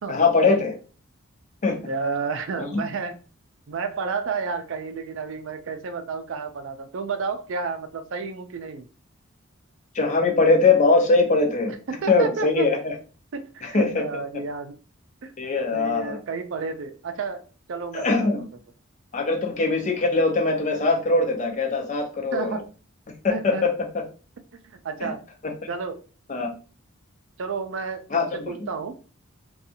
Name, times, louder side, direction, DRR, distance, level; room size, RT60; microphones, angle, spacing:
voice 1, 0.1-0.8 1.6-1.8 2.6-2.8 9.9-11.7 12.1-13.0 13.6-14.1 15.4-16.2 17.9-18.5 19.1-22.6 23.1-24.0 25.0-25.1 25.4-25.5 26.3-26.5 28.1-28.7, left 3 dB, 35° left, 0.4 m, -22 dB
voice 2, 1.8-3.2 3.7-8.9 11.9-12.7 13.3-14.8 15.2-15.3 15.7-18.3 22.3-22.6 23.3-23.7 24.5-25.2 25.7-26.0 27.4-28.9, right 5 dB, 60° right, 0.4 m, -31 dB
2.6 x 2.3 x 2.7 m
head